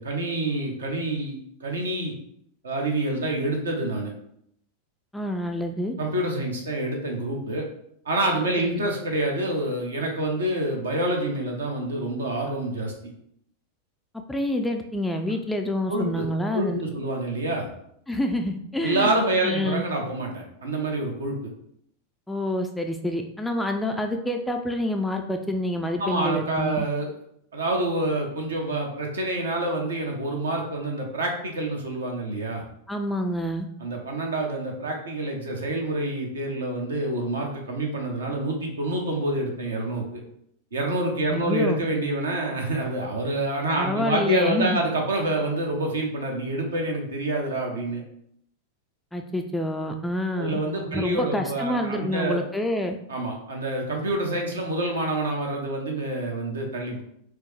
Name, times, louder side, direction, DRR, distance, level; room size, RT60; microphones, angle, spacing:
voice 1, 0.0-2.1 2.6-4.1 6.0-7.6 8.0-12.9 15.9-16.3 16.5-17.7 18.8-21.4 26.0-27.1 27.5-32.6 33.8-40.2 40.7-48.0 50.4-52.4 53.1-57.0, right 2 dB, 70° right, 1 dB, 0.8 m, -27 dB
voice 2, 5.1-5.9 8.6-8.8 14.3-16.8 18.1-19.1 19.4-19.8 22.3-26.8 32.9-33.7 41.3-41.8 43.7-44.8 49.1-50.6 50.9-53.0, left 1 dB, 5° left, 4 dB, 0.3 m, -27 dB
4.6 x 2.0 x 3.2 m, 0.71 s
figure-of-eight pair, 90°, 0 cm